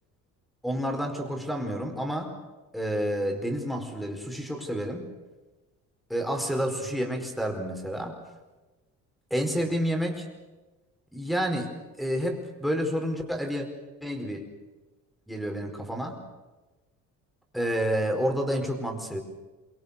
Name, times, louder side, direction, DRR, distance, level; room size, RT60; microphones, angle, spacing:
voice 1, 0.6-2.3 2.7-5.1 6.1-8.2 9.3-10.3 11.1-13.7 14.0-14.5 15.3-16.2 17.5-19.2, equal, ahead, 4 dB, 4.9 m, -29 dB
27.0 x 25.0 x 7.0 m, 1.2 s
cardioid pair, 140°, 31 cm